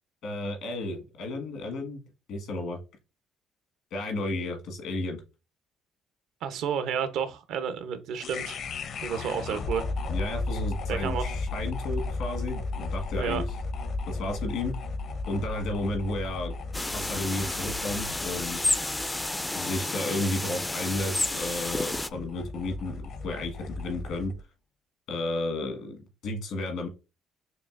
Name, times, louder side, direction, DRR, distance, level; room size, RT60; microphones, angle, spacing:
voice 1, 0.2-2.0 2.3-2.8 3.9-5.2 10.1-13.4 14.1-14.8 15.3-16.5 16.9-18.8 19.5-24.3 25.1-26.9, left 2 dB, 80° left, 3 dB, 1.4 m, -33 dB
voice 2, 6.4-8.6 9.0-9.9 10.9-11.3 13.1-13.4, right 7 dB, 75° right, 10 dB, 0.7 m, -31 dB
sound 1, 8.2-24.4, left 3 dB, 55° left, 0.6 m, -35 dB
sound 2, 16.7-22.1, left 2 dB, 10° left, 0.3 m, -31 dB
6.5 x 2.6 x 2.4 m, 0.29 s
cardioid pair, 90°, 0 cm